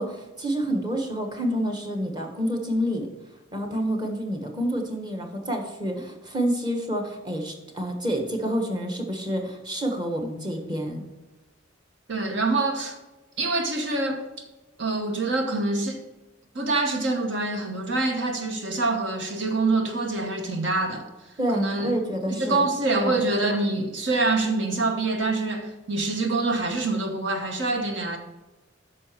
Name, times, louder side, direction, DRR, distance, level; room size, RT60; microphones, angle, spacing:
voice 1, 0.0-3.1 3.5-11.0 21.4-22.6 23.0-23.2, equal, 20° right, 1.4 m, -28 dB
voice 2, 12.1-13.0 13.4-14.3 14.8-16.0 16.5-21.9 22.3-28.2, right 3 dB, 65° right, 1.1 m, -25 dB
9.5 x 6.1 x 4.5 m
head